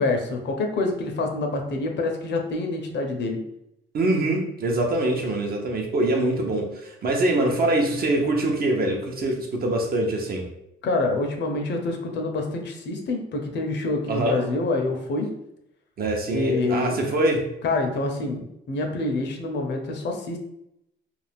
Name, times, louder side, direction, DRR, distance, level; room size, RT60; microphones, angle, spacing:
voice 1, 0.0-3.4 10.8-15.3 16.3-17.1 17.6-20.4, left 2 dB, 65° left, 3 dB, 0.6 m, -26 dB
voice 2, 3.9-10.5 14.1-14.4 16.0-17.5, right 1 dB, 50° right, 1 dB, 0.7 m, -24 dB
2.5 x 2.3 x 3.3 m, 0.81 s
cardioid pair, 90°, 20 cm